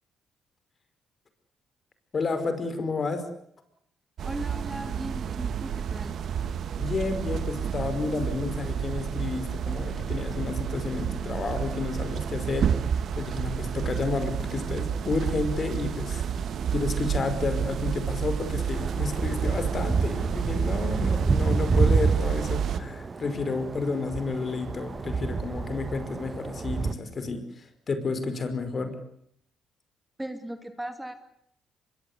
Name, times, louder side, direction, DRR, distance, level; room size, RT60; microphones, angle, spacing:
voice 1, 2.1-3.3 6.8-12.8 13.2-16.2 16.7-29.0, left 4 dB, 40° left, 10 dB, 5.2 m, -31 dB
voice 2, 4.2-6.1 30.2-31.1, right 1 dB, 10° right, 7 dB, 2.7 m, -37 dB
sound 1, 4.2-22.8, right 8 dB, 65° right, 1.7 m, -30 dB
sound 2, 18.7-26.9, right 4 dB, 35° right, 1.6 m, -28 dB
25.0 x 23.0 x 8.3 m, 0.70 s
cardioid pair, 90°, 0 cm